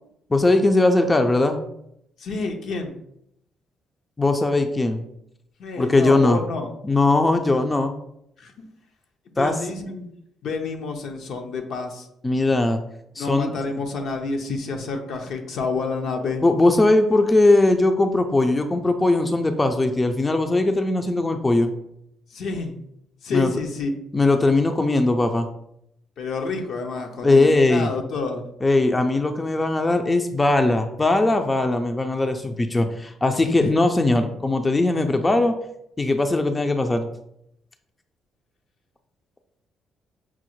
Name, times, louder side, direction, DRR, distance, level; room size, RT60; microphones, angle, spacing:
voice 1, 0.3-1.6 4.2-5.0 5.8-6.4 6.8-7.9 9.4-9.6 12.2-12.8 13.2-13.5 14.5-14.6 16.4-21.7 23.3-23.5 24.1-25.5 27.2-27.9 28.6-35.6 36.0-37.1, left 2 dB, 20° left, 6 dB, 0.4 m, -19 dB
voice 2, 2.2-3.0 5.6-6.7 8.4-8.7 9.4-10.0 10.4-12.1 13.2-16.4 22.3-22.8 23.2-23.9 26.2-28.4 33.4-33.7, left 4 dB, 70° left, 4 dB, 0.6 m, -29 dB
5.7 x 2.0 x 3.0 m, 0.77 s
supercardioid pair, 65°, 0 cm